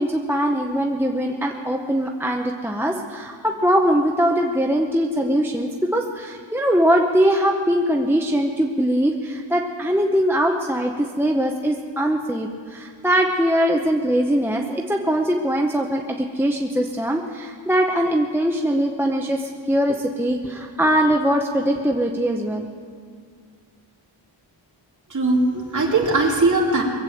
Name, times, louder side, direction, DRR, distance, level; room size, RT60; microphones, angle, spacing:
voice 1, 0.0-22.7, equal, 5° right, 1 dB, 0.7 m, -21 dB
voice 2, 25.1-26.8, right 2 dB, 40° right, -2 dB, 2.7 m, -19 dB
22.0 x 8.2 x 7.6 m, 2.1 s
wide cardioid pair, 170°, 47 cm